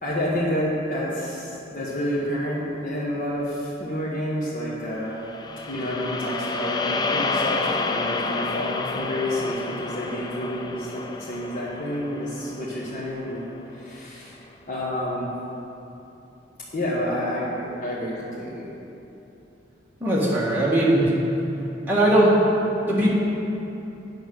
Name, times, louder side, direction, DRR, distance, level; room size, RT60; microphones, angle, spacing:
voice 1, 0.0-5.3 5.7-13.5 13.7-14.4 14.7-15.3 16.7-18.7, equal, 45° left, -7 dB, 1.4 m, -29 dB
sound 1, 5.2-13.5, left 3 dB, 20° left, 0.4 m, -30 dB
voice 2, 20.0-21.0 21.9-22.4 22.9-23.1, right 1 dB, 10° right, -7 dB, 1.8 m, -19 dB
8.7 x 6.8 x 6.5 m, 2.9 s
head